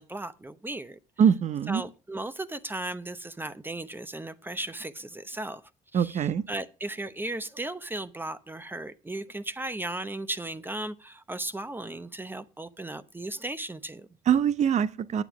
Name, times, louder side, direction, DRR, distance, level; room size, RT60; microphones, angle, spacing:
voice 1, 0.0-1.2 1.7-5.6 5.9-14.1, right 2 dB, 15° right, 0.8 m, -36 dB
voice 2, 1.2-1.8 5.9-6.4 14.3-15.2, right 8 dB, 50° right, 0.7 m, -23 dB
9.3 x 7.5 x 5.9 m
cardioid pair, 85°, 16 cm